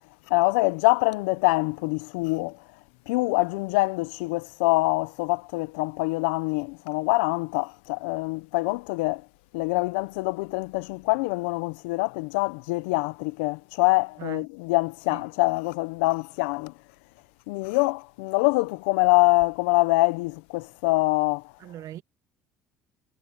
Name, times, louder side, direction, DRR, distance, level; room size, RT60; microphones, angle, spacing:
voice 1, 0.3-2.6 3.1-9.2 9.5-16.7 17.5-21.4, left 25 dB, 80° left, 0.7 m, -25 dB
voice 2, 21.6-22.0, right 12 dB, 60° right, 1.1 m, -39 dB
supercardioid pair, 75°, 6 cm